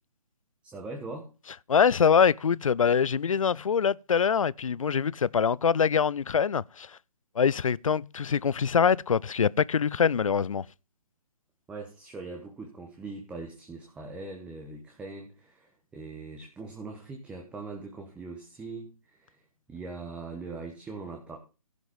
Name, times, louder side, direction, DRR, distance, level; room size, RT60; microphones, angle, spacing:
voice 1, 0.6-1.3 11.7-19.4 19.7-21.4, right 3 dB, 5° right, 1.3 m, -41 dB
voice 2, 1.7-6.9 7.4-10.6, left 6 dB, 60° left, 0.5 m, -24 dB
15.5 x 6.1 x 5.4 m
figure-of-eight pair, 140°, 19 cm